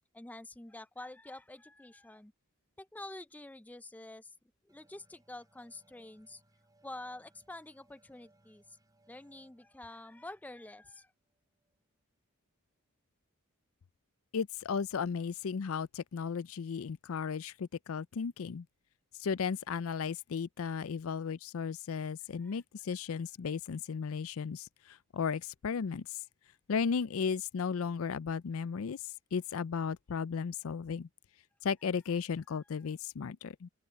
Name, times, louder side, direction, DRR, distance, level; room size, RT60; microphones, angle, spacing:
voice 1, 0.1-2.3 2.8-4.3 4.6-6.4 6.8-8.8 9.1-11.1 22.4-22.6, left 2 dB, 5° left, 0.4 m, -48 dB
sound 1, 4.7-12.0, right 1 dB, 15° right, 4.8 m, -70 dB
voice 2, 14.3-18.7 19.2-26.1 26.7-29.0 29.3-31.1 31.6-33.7, left 6 dB, 65° left, 0.4 m, -35 dB
open air
head